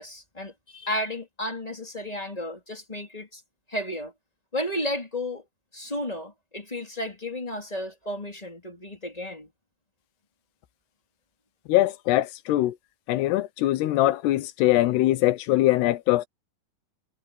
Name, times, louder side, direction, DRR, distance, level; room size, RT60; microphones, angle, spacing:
voice 1, 0.0-3.4 3.7-4.1 4.5-5.4 5.7-9.5, left 1 dB, 10° left, 3.1 m, -33 dB
voice 2, 11.7-12.7 13.1-16.3, left 16 dB, 75° left, 3.0 m, -22 dB
omnidirectional pair, 5.0 m